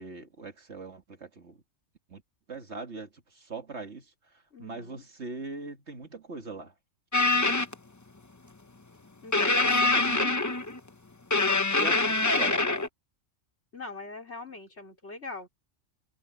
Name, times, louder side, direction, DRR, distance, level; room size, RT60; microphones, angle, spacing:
voice 1, 0.0-1.6 2.1-2.2 2.5-6.7 9.6-10.3 11.7-12.7, right 4 dB, 55° right, 2.3 m, -41 dB
voice 2, 4.5-5.0 7.3-7.6 9.2-10.3 13.7-15.5, left 3 dB, 55° left, 4.7 m, -42 dB
sound 1, 7.1-7.7 9.3-10.8 11.3-12.9, left 2 dB, 20° left, 0.6 m, -24 dB
omnidirectional pair, 1.4 m